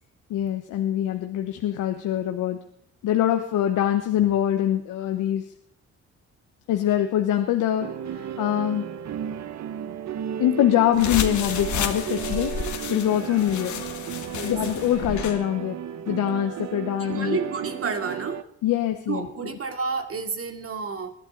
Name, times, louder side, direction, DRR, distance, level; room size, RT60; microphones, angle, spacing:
voice 1, 0.3-2.6 3.0-5.5 6.7-8.9 10.4-12.6 12.9-13.8 14.4-15.8 16.1-17.4 18.6-19.5, left 11 dB, 85° left, 5 dB, 1.2 m, -24 dB
sound 1, 7.8-18.4, right 9 dB, 65° right, 0.9 m, -34 dB
sound 2, 10.9-15.4, left 7 dB, 70° left, 1.8 m, -31 dB
voice 2, 17.0-18.4 19.1-21.1, right 5 dB, 50° right, 5 dB, 2.5 m, -30 dB
21.0 x 11.5 x 4.0 m, 0.65 s
cardioid pair, 90°, 30 cm